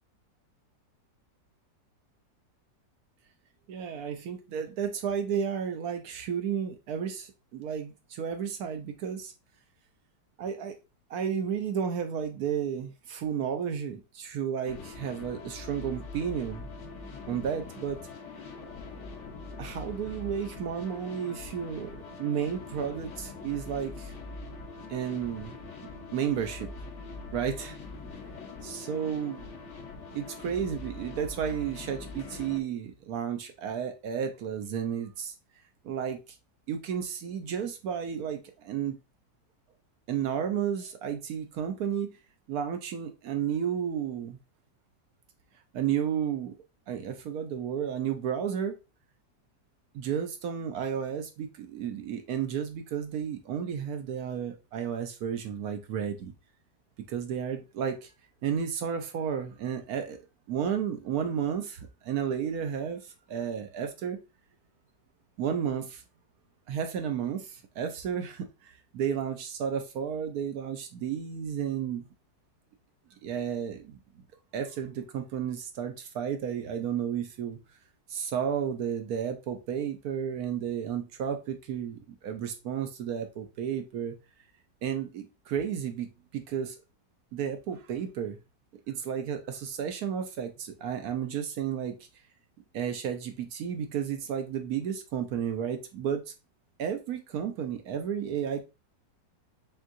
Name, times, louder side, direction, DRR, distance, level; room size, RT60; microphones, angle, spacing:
voice 1, 3.7-9.3 10.4-10.8 11.1-16.7 17.3-18.0 19.6-24.1 24.9-25.6 26.1-26.7 27.3-27.8 28.6-29.5 30.1-35.3 35.8-36.2 36.7-38.9 40.1-42.1 42.5-44.4 45.7-46.6 46.9-48.8 49.9-56.3 57.1-58.1 58.4-60.2 60.5-64.2 65.4-66.0 66.7-72.1 73.2-74.0 74.5-77.6 78.1-84.1 84.8-86.8 87.3-88.4 88.9-92.0 92.7-96.2 96.8-98.7, right 8 dB, 65° right, 1.0 m, -32 dB
sound 1, 14.7-32.6, left 3 dB, 50° left, 0.9 m, -43 dB
4.5 x 3.6 x 2.5 m
omnidirectional pair, 1.9 m